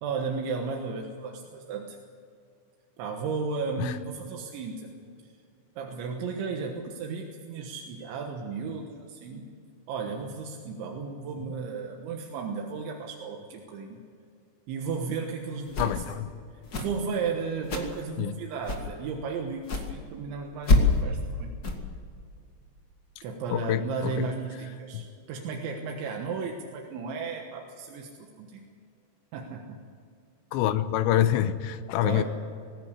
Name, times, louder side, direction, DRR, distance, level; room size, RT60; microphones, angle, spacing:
voice 1, 0.0-2.0 3.0-4.9 5.2-5.3 5.8-9.5 9.9-14.0 14.7-16.2 16.5-21.5 23.2-28.7 29.3-29.9 32.0-32.2, right 5 dB, 80° right, 2 dB, 3.7 m, -34 dB
sound 1, 15.6-16.1 16.6-17.0 17.6-18.0 18.6-18.9 19.6-19.9 20.6-21.0 21.6-21.8, left 2 dB, 55° left, 1.0 m, -25 dB
voice 2, 15.8-16.3 18.2-18.3 23.5-24.1 24.9-25.0 30.5-32.2, left 12 dB, 85° left, 12 dB, 3.0 m, -26 dB
19.5 x 17.0 x 8.4 m, 2.3 s
omnidirectional pair, 5.3 m